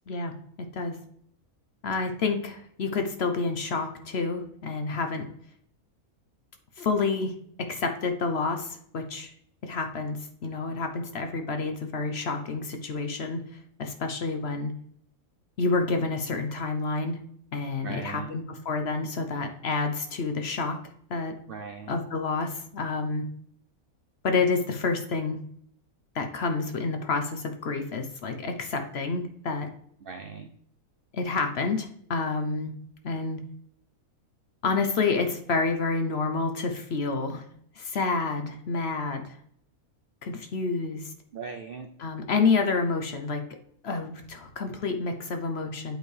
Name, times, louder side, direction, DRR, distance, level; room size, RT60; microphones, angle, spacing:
voice 1, 1.8-5.3 6.8-7.3 7.6-9.3 9.6-10.2 10.4-13.4 13.8-14.7 15.6-17.2 17.5-20.8 21.1-21.3 21.9-23.2 24.2-25.4 26.1-29.7 31.1-32.7 33.0-33.4 34.6-37.4 37.8-39.4 40.2-41.1 42.0-43.4 43.8-46.0, left 4 dB, 55° left, 6 dB, 0.9 m, -29 dB
voice 2, 17.8-18.3 21.5-22.0 30.0-30.5 41.3-41.9, right 5 dB, 70° right, 6 dB, 0.5 m, -39 dB
8.0 x 4.5 x 3.3 m, 0.67 s
omnidirectional pair, 1.6 m